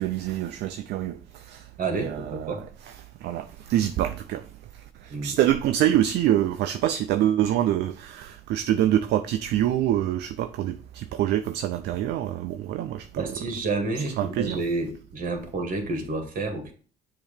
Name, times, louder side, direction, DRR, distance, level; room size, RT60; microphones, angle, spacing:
voice 1, 0.0-2.6 2.9-3.0 3.2-4.4 5.0-13.3 14.2-14.6, right 12 dB, 70° right, 0.4 m, -26 dB
voice 2, 1.8-2.6 5.1-5.4 13.2-16.7, right 3 dB, 50° right, 1.9 m, -29 dB
6.9 x 2.9 x 5.1 m
supercardioid pair, 70°, 18 cm